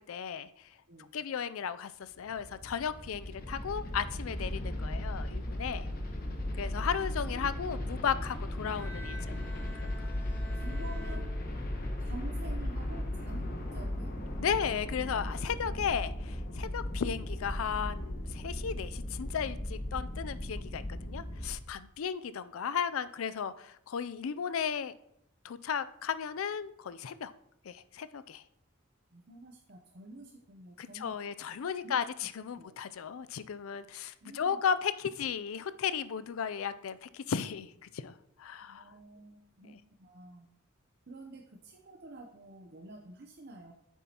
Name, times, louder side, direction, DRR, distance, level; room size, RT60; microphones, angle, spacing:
voice 1, 0.1-0.5 1.1-5.9 6.5-9.9 14.4-24.9 25.4-27.3 27.6-28.4 30.8-38.1 38.4-38.8 39.7-39.8, left 7 dB, 75° left, 14 dB, 0.4 m, -35 dB
sound 1, 2.1-21.5, left 1 dB, 45° left, 1.1 m, -36 dB
Bowed string instrument, 8.7-12.1, left 1 dB, 10° left, 1.7 m, -49 dB
voice 2, 10.5-11.3 12.0-14.2 29.1-31.1 31.8-32.0 32.6-32.7 34.2-34.6 38.6-40.5 41.1-43.7, right 2 dB, 50° right, 1 dB, 0.7 m, -49 dB
9.2 x 7.2 x 2.9 m, 0.76 s
head